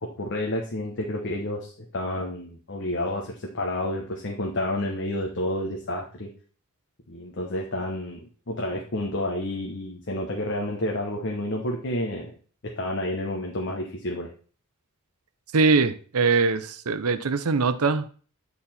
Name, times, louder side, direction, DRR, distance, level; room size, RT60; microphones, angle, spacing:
voice 1, 0.0-6.3 7.1-8.2 8.5-12.3 12.6-14.3, left 1 dB, 55° left, 1.0 m, -30 dB
voice 2, 15.5-18.1, right 4 dB, 75° right, 0.7 m, -22 dB
8.8 x 4.2 x 4.2 m
head